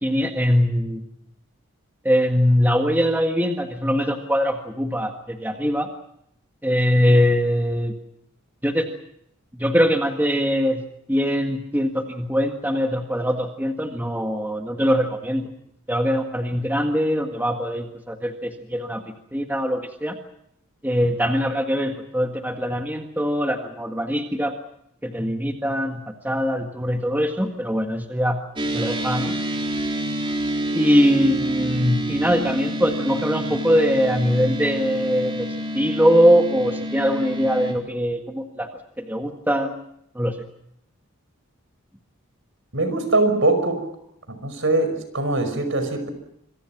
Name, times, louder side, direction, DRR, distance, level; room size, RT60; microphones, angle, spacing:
voice 1, 0.0-1.0 2.0-5.9 6.6-7.9 8.6-8.9 9.5-15.5 15.9-20.2 20.8-24.5 25.0-28.4 28.7-29.3 30.7-38.7 39.0-39.7 40.1-40.4, equal, 10° right, 4 dB, 1.7 m, -22 dB
sound 1, 28.6-37.7, right 1 dB, 25° right, 3.9 m, -28 dB
voice 2, 42.7-43.8 44.3-46.1, right 2 dB, 65° right, 9 dB, 5.4 m, -22 dB
26.5 x 24.0 x 6.0 m, 0.72 s
head